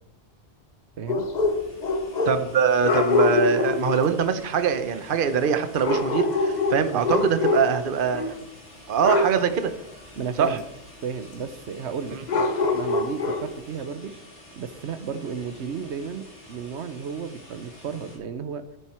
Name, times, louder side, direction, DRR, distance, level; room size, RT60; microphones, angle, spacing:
sound 1, 1.1-2.5 2.8-4.1 5.8-8.4 9.0-9.5 12.3-13.6, left 3 dB, 45° left, 0.9 m, -24 dB
sound 2, 1.4-18.2, left 1 dB, 85° left, 4.6 m, -48 dB
voice 1, 2.3-8.4 8.9-9.7 10.4-10.6, right 7 dB, 50° right, 10 dB, 1.0 m, -23 dB
voice 2, 6.9-7.3 10.2-10.6 11.0-14.1 14.6-18.6, right 6 dB, 80° right, 11 dB, 1.1 m, -33 dB
13.5 x 9.2 x 4.4 m, 0.81 s
omnidirectional pair, 1.2 m